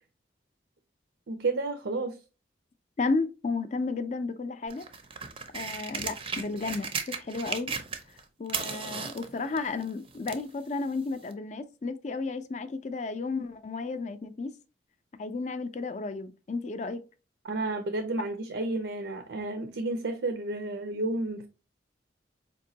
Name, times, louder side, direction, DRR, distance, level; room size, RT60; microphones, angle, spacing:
voice 1, 1.3-2.2 17.4-21.5, right 2 dB, 80° right, 0.5 m, -31 dB
voice 2, 3.0-4.9 5.5-7.8 8.4-14.6 15.2-17.0, left 3 dB, 40° left, 0.4 m, -33 dB
sound 1, 4.7-8.2 8.5-10.5 11.3-11.4, right 5 dB, 30° right, 0.5 m, -35 dB
4.3 x 3.0 x 2.7 m
head